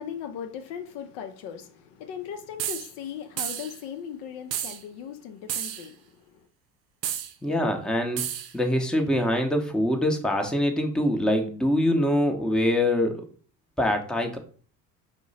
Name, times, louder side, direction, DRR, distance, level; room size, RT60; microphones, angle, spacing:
voice 1, 0.0-6.5, left 8 dB, 55° left, 0.6 m, -38 dB
sound 1, 2.6-2.9 3.4-3.8 4.5-4.8 5.5-5.9 7.0-7.3 8.2-8.5, right 10 dB, 85° right, 0.6 m, -31 dB
voice 2, 7.4-8.2 8.5-13.2 13.8-14.4, left 1 dB, ahead, 0.7 m, -24 dB
4.5 x 2.1 x 3.9 m
hypercardioid pair, 60°, 50 cm